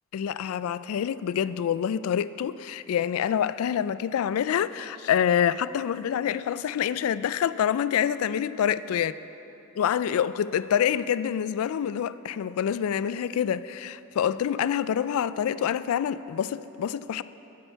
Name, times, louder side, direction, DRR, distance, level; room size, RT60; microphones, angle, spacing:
voice 1, 0.1-9.1 9.8-17.2, left 9 dB, 75° left, 16 dB, 0.3 m, -26 dB
12.0 x 10.0 x 4.6 m, 3.0 s
head